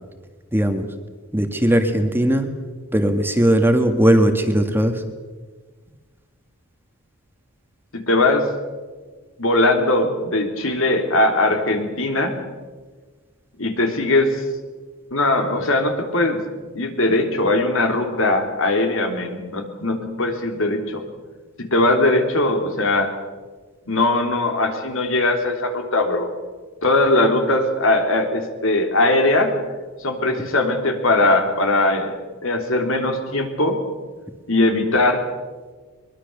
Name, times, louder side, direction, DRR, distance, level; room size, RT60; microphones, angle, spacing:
voice 1, 0.5-0.9 1.3-2.5 2.9-5.1, right 1 dB, 10° right, 6 dB, 1.7 m, -18 dB
voice 2, 7.9-8.5 9.4-12.3 13.6-14.4 15.1-16.4 16.7-21.0 21.6-23.1 23.9-26.3 26.8-29.5 30.0-32.1 32.4-33.8 34.5-35.2, left 2 dB, 65° left, 5 dB, 3.3 m, -20 dB
23.0 x 22.0 x 6.8 m, 1.4 s
head